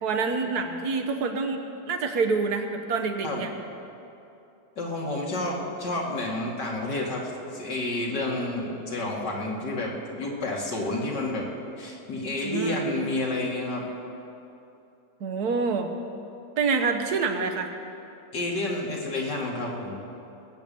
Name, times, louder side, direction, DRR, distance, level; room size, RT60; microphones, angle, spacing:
voice 1, 0.0-3.5 12.4-12.8 15.2-15.9 16.6-17.7, right 4 dB, 65° right, 4 dB, 1.7 m, -27 dB
voice 2, 4.8-11.5 11.8-13.9 18.3-20.0, left 2 dB, 80° left, -3 dB, 3.0 m, -30 dB
20.5 x 9.0 x 7.0 m, 2.8 s
omnidirectional pair, 1.8 m